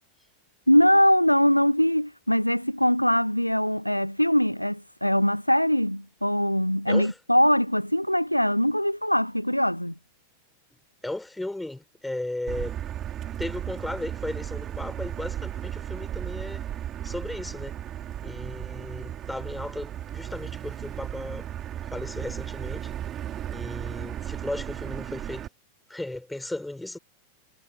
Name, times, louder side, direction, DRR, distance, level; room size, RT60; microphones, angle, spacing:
voice 1, 0.7-9.9, equal, 90° left, 0.7 m, -22 dB
voice 2, 10.7-12.8 13.4-16.6 17.0-17.7 18.2-21.5 21.8-22.9 23.5-25.5 25.9-27.0, left 1 dB, 5° left, 4.8 m, -35 dB
Motor vehicle (road), 12.5-25.5, right 11 dB, 30° right, 4.4 m, -35 dB
figure-of-eight pair, 90°, 0 cm